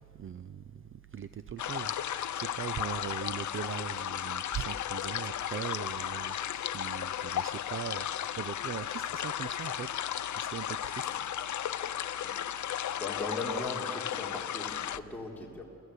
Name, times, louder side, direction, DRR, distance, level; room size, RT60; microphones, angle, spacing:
voice 1, 0.2-0.5 1.1-2.3 2.6-6.3 6.7-9.9 10.4-11.1, right 8 dB, 45° right, 13 dB, 0.4 m, -40 dB
sound 1, 1.6-15.0, left 10 dB, 75° left, 0.6 m, -35 dB
voice 2, 12.7-15.6, left 2 dB, 5° left, -3 dB, 3.4 m, -39 dB
28.5 x 15.5 x 8.2 m, 2.9 s
wide cardioid pair, 175°, 30 cm